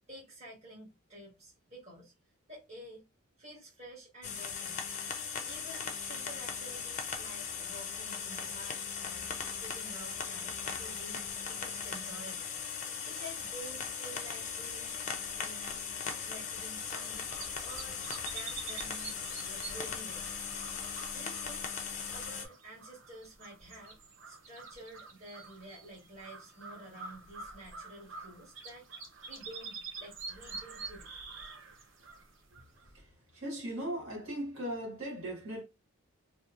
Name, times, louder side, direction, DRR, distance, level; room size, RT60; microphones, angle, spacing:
voice 1, 0.1-2.1 2.5-3.0 3.4-4.9 5.4-12.6 13.0-15.0 15.4-15.7 16.0-17.3 17.6-18.0 18.3-19.2 19.4-20.4 21.1-21.6 22.1-24.0 24.2-28.9 29.3-31.1 31.5-31.6, right 1 dB, 30° right, 1.5 m, -50 dB
sound 1, 4.2-22.5, left 6 dB, 35° left, 0.4 m, -39 dB
sound 2, 16.9-33.0, right 4 dB, 60° right, 0.7 m, -47 dB
voice 2, 33.3-35.6, right 1 dB, 75° right, 1.5 m, -38 dB
2.9 x 2.4 x 2.4 m
head